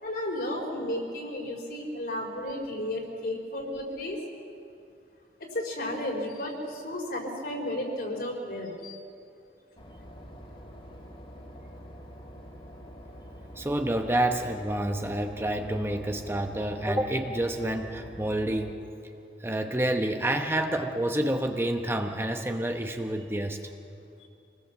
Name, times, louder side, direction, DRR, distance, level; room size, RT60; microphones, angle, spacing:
voice 1, 0.0-4.2 5.5-9.0 24.2-24.3, left 1 dB, 60° left, 0 dB, 4.5 m, -33 dB
Boat Water vehicle / Engine, 9.8-18.7, equal, 30° left, 3.0 m, -46 dB
voice 2, 13.6-18.8 19.4-23.6, right 1 dB, 15° right, 4 dB, 0.9 m, -28 dB
27.0 x 19.5 x 7.3 m, 2.6 s
head